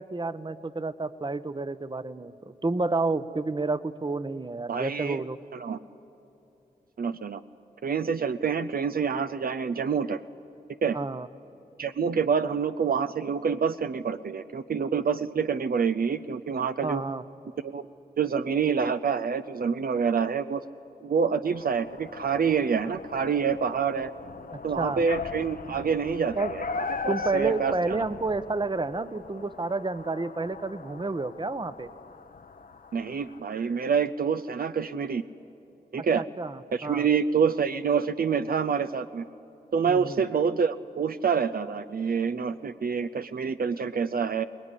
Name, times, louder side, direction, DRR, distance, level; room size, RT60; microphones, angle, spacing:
voice 1, 0.0-5.4 10.9-11.3 16.8-17.2 24.5-25.0 26.3-26.5 27.1-31.9 36.0-37.1 39.9-40.2, right 3 dB, 30° right, 13 dB, 1.0 m, -30 dB
voice 2, 4.7-5.2 5.6-5.8 7.0-7.4 7.8-10.2 10.8-11.0 11.8-17.0 17.6-17.9 18.2-20.6 21.0-24.1 24.6-26.6 27.0-27.7 32.9-35.2 35.9-36.2 36.7-39.2 39.7-44.4, right 6 dB, 60° right, 10 dB, 0.6 m, -27 dB
sound 1, 21.5-33.4, left 5 dB, 60° left, 0.9 m, -39 dB
24.0 x 20.0 x 9.9 m, 2.9 s
cardioid pair, 45°, 17 cm